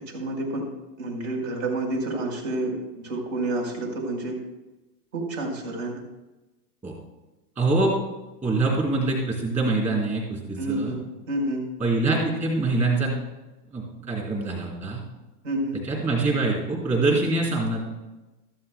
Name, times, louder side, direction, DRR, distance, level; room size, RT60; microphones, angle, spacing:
voice 1, 0.1-0.6 1.0-2.7 3.0-4.3 5.1-5.9 10.6-11.0 11.3-11.6 15.4-15.8, right 2 dB, 50° right, 1 dB, 4.7 m, -28 dB
voice 2, 7.6-7.9 8.4-10.9 11.8-13.1 13.7-15.0 15.8-17.8, right 2 dB, 15° right, -1 dB, 3.9 m, -24 dB
17.0 x 13.5 x 2.3 m, 1.0 s
supercardioid pair, 160°, 49 cm